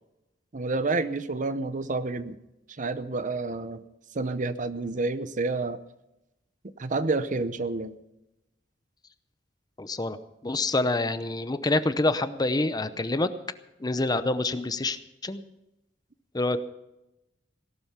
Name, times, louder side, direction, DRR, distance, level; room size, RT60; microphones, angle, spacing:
voice 1, 0.5-2.4 2.8-3.8 4.1-5.8 6.8-7.9, right 3 dB, 45° right, 13 dB, 0.7 m, -29 dB
voice 2, 9.8-10.2 10.4-13.3 13.8-15.0 15.2-15.4 16.3-16.6, left 2 dB, 20° left, 12 dB, 0.7 m, -26 dB
17.5 x 12.0 x 5.7 m, 0.93 s
head